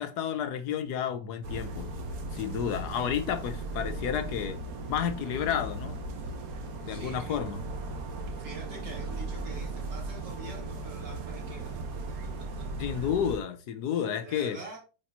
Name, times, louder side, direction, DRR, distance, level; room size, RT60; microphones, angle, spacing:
voice 1, 0.0-1.9 2.3-4.6 4.9-6.0 6.8-7.6 12.8-14.6, left 8 dB, 70° left, 1.2 m, -31 dB
sound 1, 1.4-13.4, right 2 dB, 60° right, 1.4 m, -37 dB
voice 2, 6.9-7.4 8.4-11.8 14.2-14.8, right 2 dB, 80° right, 3.0 m, -45 dB
8.5 x 4.2 x 2.8 m
omnidirectional pair, 1.9 m